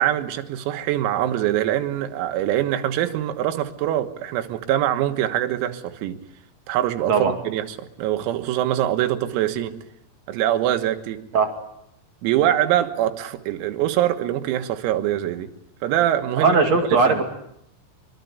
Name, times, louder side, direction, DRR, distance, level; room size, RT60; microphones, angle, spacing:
voice 1, 0.0-6.2 6.7-7.6 8.0-9.7 10.3-11.2 12.2-15.5 15.8-16.6 17.1-17.2, right 12 dB, 90° right, 7 dB, 4.2 m, -23 dB
voice 2, 16.4-17.2, right 4 dB, 45° right, 3 dB, 2.6 m, -18 dB
24.5 x 23.5 x 8.1 m, 0.75 s
omnidirectional pair, 6.0 m